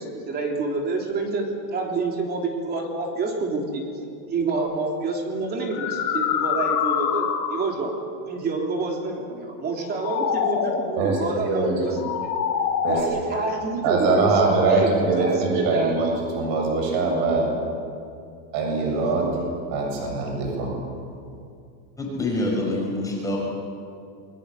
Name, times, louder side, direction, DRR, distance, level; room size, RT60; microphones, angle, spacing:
voice 1, 0.0-3.8 4.3-7.9 8.2-12.3 12.8-15.9, right 3 dB, 20° right, 2 dB, 3.4 m, -28 dB
sound 1, 4.5-4.7 5.5-7.8 9.7-10.9 11.9-13.0, left 8 dB, 85° left, 5.5 m, -25 dB
voice 2, 11.0-12.0 12.8-13.2 13.8-17.5 18.5-19.3 19.7-20.8, right 3 dB, 40° right, 1 dB, 7.6 m, -23 dB
voice 3, 22.0-23.4, left 2 dB, 5° left, -2 dB, 5.7 m, -26 dB
28.0 x 23.5 x 7.9 m, 2.4 s
supercardioid pair, 170°, 50 cm